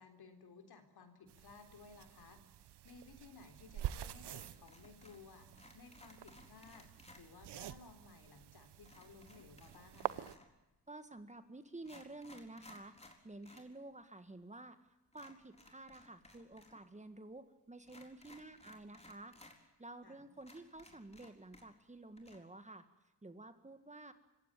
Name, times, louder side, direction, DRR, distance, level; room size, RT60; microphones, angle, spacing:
voice 1, 0.0-2.4 2.8-10.3 20.0-20.2, left 4 dB, 65° left, 7 dB, 3.8 m, -58 dB
sound 1, 1.3-10.4, right 12 dB, 75° right, 1.0 m, -47 dB
sound 2, 4.3-5.3 5.5-7.2 8.8-10.6 11.3-11.4 11.8-13.7 14.0-14.1 15.1-16.8 17.0-17.1 17.8-19.6 20.0-20.1 20.4-21.9 22.2-22.4, left 2 dB, 15° left, 4.1 m, -60 dB
voice 2, 10.9-12.9 13.2-14.8 15.1-22.9 23.2-24.1, right 2 dB, 15° right, 10 dB, 1.8 m, -52 dB
25.5 x 16.0 x 9.1 m, 0.97 s
cardioid pair, 85°, 41 cm